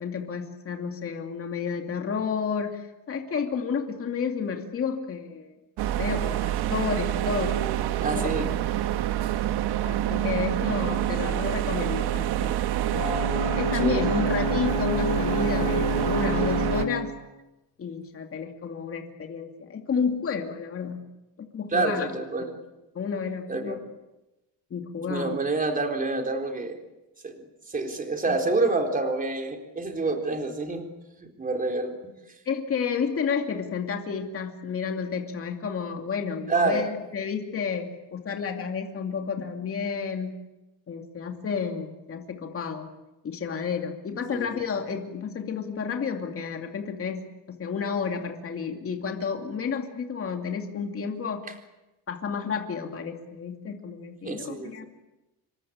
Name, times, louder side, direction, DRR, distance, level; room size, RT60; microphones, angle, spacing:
voice 1, 0.0-5.5 6.0-7.6 8.1-8.6 9.8-12.6 12.8-13.0 13.6-17.1 17.8-21.0 21.4-22.1 22.4-22.5 22.9-23.8 24.7-25.4 28.3-28.4 32.5-40.4 40.9-42.9 43.2-51.5 52.1-54.9, left 6 dB, 35° left, 4 dB, 2.6 m, -31 dB
sound 1, 5.8-16.9, right 12 dB, 70° right, 1.6 m, -27 dB
voice 2, 8.0-8.5 13.8-14.2 21.7-22.4 23.5-23.8 25.0-26.8 27.2-30.8 31.2-32.1 36.5-36.8 44.3-44.5 54.2-54.9, right 3 dB, 20° right, 3 dB, 3.8 m, -28 dB
Brass instrument, 12.9-17.1, left 4 dB, 55° left, 7.6 m, -30 dB
27.5 x 23.5 x 8.8 m, 1.0 s
cardioid pair, 160°, 40 cm